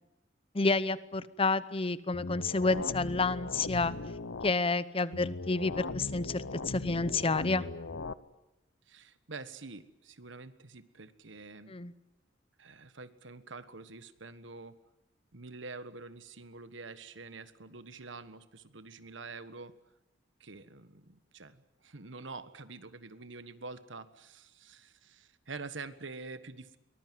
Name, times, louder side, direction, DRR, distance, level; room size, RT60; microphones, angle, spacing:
voice 1, 0.5-3.9 4.4-7.7 11.7-11.9, left 3 dB, 30° left, 16 dB, 0.8 m, -29 dB
sound 1, 2.1-4.5 5.1-8.1, left 3 dB, 80° left, 0.9 m, -39 dB
voice 2, 8.9-11.7 12.6-14.8 15.3-19.7 20.4-26.8, right 3 dB, 75° right, 12 dB, 1.5 m, -46 dB
23.0 x 20.0 x 9.4 m, 0.90 s
head